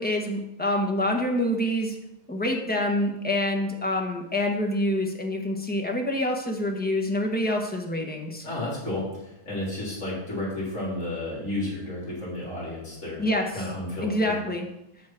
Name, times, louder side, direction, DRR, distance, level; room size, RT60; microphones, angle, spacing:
voice 1, 0.0-1.9 2.3-8.5 13.2-13.4 14.0-14.7, left 1 dB, 5° left, 1 dB, 0.7 m, -26 dB
voice 2, 8.4-13.2 13.5-14.3, left 1 dB, 35° left, -5 dB, 4.0 m, -32 dB
8.5 x 6.3 x 5.9 m, 0.87 s
omnidirectional pair, 2.3 m